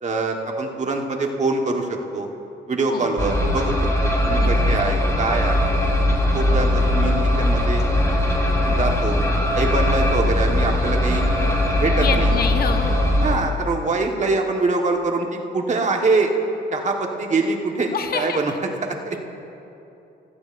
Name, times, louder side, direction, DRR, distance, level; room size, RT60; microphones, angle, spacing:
voice 1, 0.0-2.3 2.7-3.7 4.0-5.8 6.3-7.8 8.7-9.2 9.5-11.2 11.8-12.4 13.2-15.3 15.5-16.3 16.7-18.5 18.8-19.2, right 3 dB, 35° right, 2 dB, 1.3 m, -24 dB
sound 1, 3.2-13.4, left 1 dB, 15° left, 1.4 m, -20 dB
voice 2, 12.0-13.2 17.9-18.4, left 6 dB, 50° left, 6 dB, 0.8 m, -27 dB
16.5 x 14.0 x 2.5 m, 2.8 s
cardioid pair, 90°, 20 cm